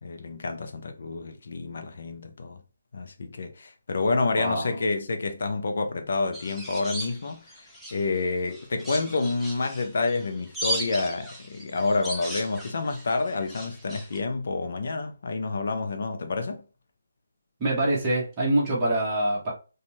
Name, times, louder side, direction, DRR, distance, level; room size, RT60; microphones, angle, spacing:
voice 1, 0.0-2.6 2.9-7.5 7.9-16.6, left 3 dB, 60° left, 0.5 m, -28 dB
voice 2, 4.3-4.8 17.6-19.5, right 1 dB, 20° right, 0.9 m, -25 dB
sound 1, 6.3-8.2 8.5-14.2, right 1 dB, ahead, 0.5 m, -36 dB
2.5 x 2.3 x 3.0 m
hypercardioid pair, 160°, 0 cm